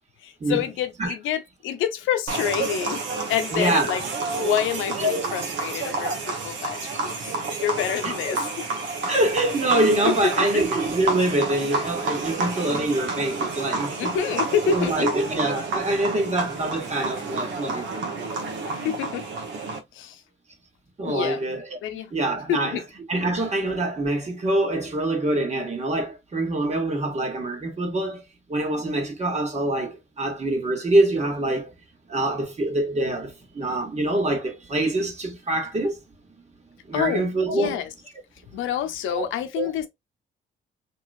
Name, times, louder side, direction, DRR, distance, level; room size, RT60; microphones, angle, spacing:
voice 1, 0.2-3.0 3.3-4.0 4.4-6.8 7.0-7.1 7.6-8.6 10.1-10.4 14.0-15.1 18.7-19.2 19.9-20.2 21.0-22.1 22.5-22.8 36.9-37.2 37.5-37.9 38.5-39.9, left 9 dB, 85° left, 0.6 m, -27 dB
sound 1, 2.3-19.8, right 3 dB, 70° right, 1.0 m, -29 dB
voice 2, 3.5-4.0 5.0-5.2 8.0-8.4 9.1-14.2 14.6-18.2 21.0-21.8 22.1-22.8 23.1-28.2 28.5-31.7 32.1-36.0 36.9-37.8 39.1-39.3 39.6-39.7, right 1 dB, 35° right, 1.4 m, -25 dB
2.9 x 2.9 x 2.4 m
cardioid pair, 90°, 20 cm